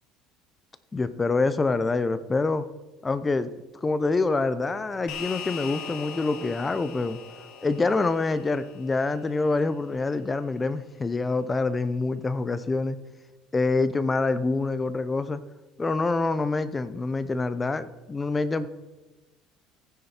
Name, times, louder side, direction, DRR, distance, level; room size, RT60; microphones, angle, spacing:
voice 1, 0.9-2.6 3.0-3.5 3.8-7.2 7.6-13.0 13.5-15.4 15.8-18.7, left 3 dB, 15° left, 13 dB, 0.7 m, -26 dB
sound 1, 5.1-9.7, left 7 dB, 60° left, 3.3 m, -41 dB
15.0 x 9.6 x 4.4 m, 1.1 s
cardioid pair, 135°, 0 cm